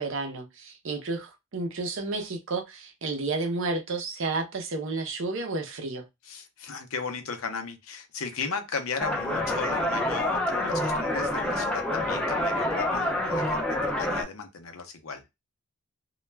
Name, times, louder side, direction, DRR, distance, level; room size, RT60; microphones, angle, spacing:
voice 1, 0.0-6.0, right 3 dB, 60° right, 0.6 m, -31 dB
voice 2, 6.2-15.2, left 5 dB, 70° left, 0.6 m, -35 dB
sound 1, 9.0-14.2, left 1 dB, 5° left, 0.4 m, -27 dB
2.2 x 2.1 x 3.2 m
head